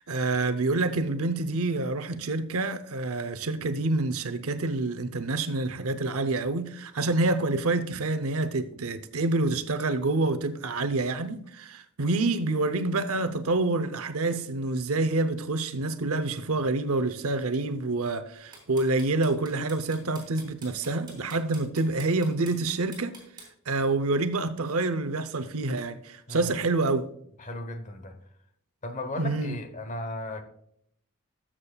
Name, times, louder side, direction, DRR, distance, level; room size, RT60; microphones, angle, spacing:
voice 1, 0.1-23.2 23.7-27.1 29.2-29.6, right 2 dB, 75° right, 0.7 m, -27 dB
sound 1, 18.3-23.5, right 4 dB, 20° right, 3.6 m, -47 dB
voice 2, 27.4-28.2 28.8-30.4, left 1 dB, 35° left, 1.0 m, -36 dB
13.5 x 7.3 x 2.3 m
head